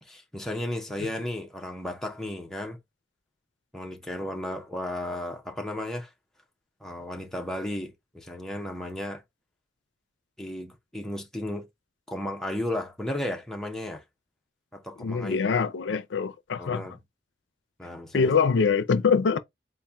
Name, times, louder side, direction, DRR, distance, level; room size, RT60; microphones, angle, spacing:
voice 1, 0.0-2.8 3.7-6.1 6.8-9.2 10.4-11.7 12.1-14.0 14.7-15.4 16.6-17.0 17.8-18.3, left 1 dB, 5° left, 0.6 m, -34 dB
voice 2, 15.0-16.9 18.1-19.4, left 5 dB, 85° left, 0.5 m, -24 dB
4.1 x 2.1 x 3.4 m
head